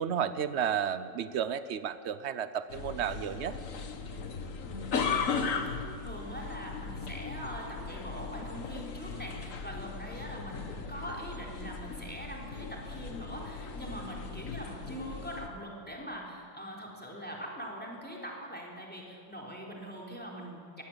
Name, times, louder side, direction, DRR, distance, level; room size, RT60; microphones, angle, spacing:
voice 1, 0.0-3.6, right 8 dB, 80° right, 13 dB, 0.6 m, -32 dB
sound 1, 2.7-15.5, left 5 dB, 45° left, 1.6 m, -37 dB
voice 2, 5.4-20.8, equal, 5° left, -2 dB, 3.7 m, -42 dB
22.0 x 17.5 x 8.0 m, 2.3 s
omnidirectional pair, 2.0 m